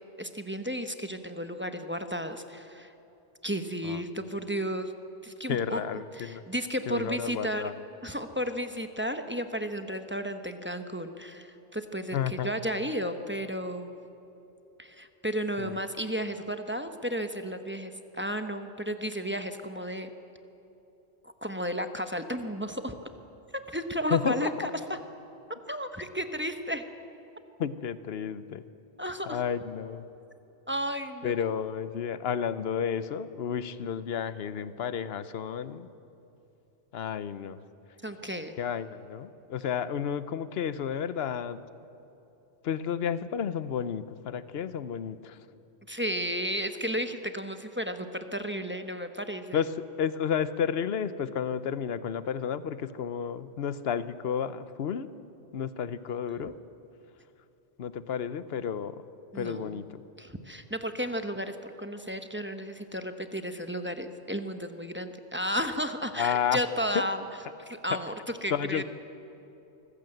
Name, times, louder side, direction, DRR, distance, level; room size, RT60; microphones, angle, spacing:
voice 1, 0.2-2.9 3.4-4.9 5.2-5.8 6.1-7.6 8.0-13.9 14.8-20.1 21.2-22.9 23.7-25.0 25.7-26.8 29.0-29.4 30.7-31.3 38.0-38.6 45.9-49.6 59.3-59.8 60.2-67.2 67.7-68.1 68.4-68.8, equal, 10° right, 7 dB, 0.9 m, -33 dB
voice 2, 5.5-6.4 6.9-7.7 12.1-12.5 15.6-15.8 24.1-24.7 27.6-28.6 29.3-30.1 31.2-35.9 36.9-37.6 38.6-41.6 42.6-45.4 49.5-49.7 50.0-55.1 55.5-56.5 57.8-59.0 59.3-60.0 66.2-66.6 68.5-68.8, left 8 dB, 65° left, 14 dB, 1.0 m, -31 dB
24.5 x 15.0 x 7.8 m, 2.8 s
omnidirectional pair, 1.1 m